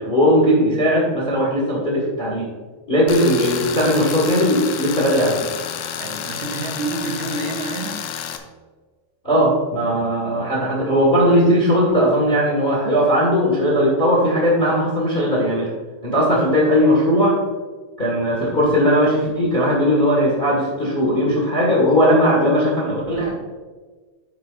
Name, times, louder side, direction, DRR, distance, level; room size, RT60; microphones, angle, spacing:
voice 1, 0.0-2.5 2.9-5.5 9.2-15.7 16.0-17.4 18.0-23.3, equal, 20° left, -3 dB, 1.3 m, -18 dB
Tools, 3.1-8.4, left 9 dB, 80° left, 2.1 m, -30 dB
voice 2, 6.0-8.1, right 3 dB, 75° right, 2 dB, 2.7 m, -28 dB
9.6 x 9.2 x 2.6 m, 1.4 s
omnidirectional pair, 4.0 m